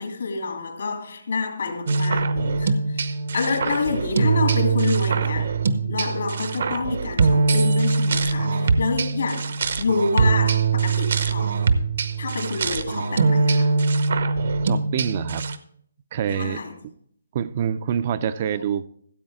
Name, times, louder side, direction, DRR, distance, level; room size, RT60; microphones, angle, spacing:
voice 1, 0.0-5.5 5.8-9.5 9.8-11.5 12.2-13.7 16.3-16.7, left 4 dB, 75° left, 2.7 m, -27 dB
sound 1, 1.9-15.6, right 4 dB, 65° right, 0.8 m, -22 dB
voice 2, 14.6-15.5 16.1-16.6 17.3-18.9, right 8 dB, 35° right, 0.4 m, -26 dB
14.5 x 7.7 x 3.5 m
hypercardioid pair, 160°, 0 cm